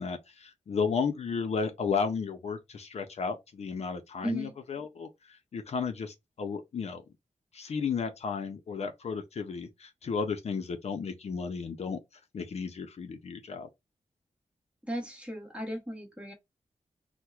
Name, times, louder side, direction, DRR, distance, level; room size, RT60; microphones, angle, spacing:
voice 1, 0.0-7.0 7.5-12.0 12.3-13.7, left 5 dB, 60° left, 0.5 m, -33 dB
voice 2, 4.2-4.5 14.8-16.3, equal, 10° right, 1.0 m, -35 dB
4.4 x 2.0 x 2.3 m
wide cardioid pair, 150°, 13 cm